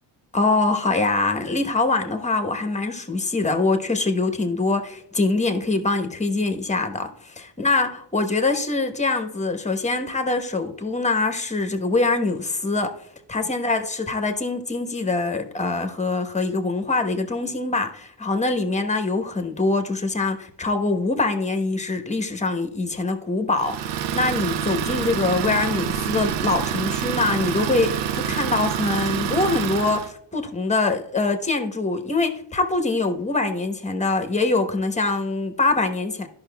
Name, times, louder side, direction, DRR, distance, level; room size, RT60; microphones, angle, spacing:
voice 1, 0.3-7.1 7.6-13.0 13.3-36.3, left 3 dB, 15° left, 1.0 m, -24 dB
Idling, 23.6-30.1, right 9 dB, 65° right, 0.6 m, -27 dB
13.0 x 5.8 x 2.3 m
cardioid pair, 100°, 45 cm